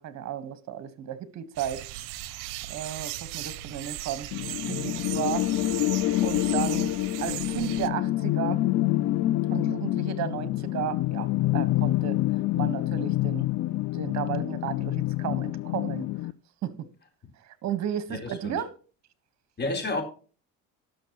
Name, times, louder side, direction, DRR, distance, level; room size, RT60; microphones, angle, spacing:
voice 1, 0.0-1.9 2.3-4.3 4.7-5.5 5.8-5.9 6.2-6.9 7.2-8.6 9.5-12.2 12.5-13.5 13.9-16.1 16.6-16.9 17.4-18.7, right 10 dB, 50° right, 1.5 m, -34 dB
sound 1, 1.5-7.9, right 15 dB, 70° right, 0.8 m, -37 dB
sound 2, 4.3-16.3, left 16 dB, 50° left, 0.5 m, -27 dB
voice 2, 18.1-18.6 19.6-20.0, left 2 dB, 30° left, 4.1 m, -30 dB
18.5 x 6.5 x 3.0 m
supercardioid pair, 90°, 34 cm